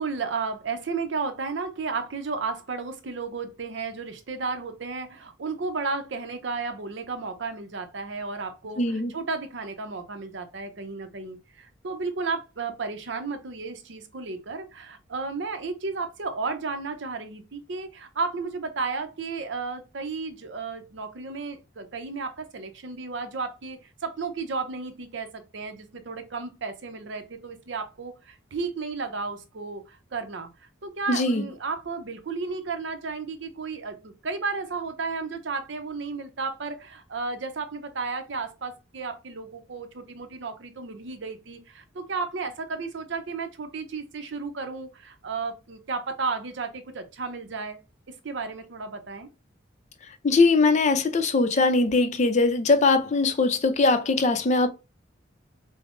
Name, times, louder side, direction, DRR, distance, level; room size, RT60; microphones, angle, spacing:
voice 1, 0.0-30.5 30.8-47.8 48.1-49.3, right 4 dB, 65° right, 0.6 m, -33 dB
voice 2, 8.8-9.1 31.1-31.5 50.2-54.7, left 3 dB, 40° left, 0.4 m, -21 dB
5.1 x 2.0 x 2.5 m
head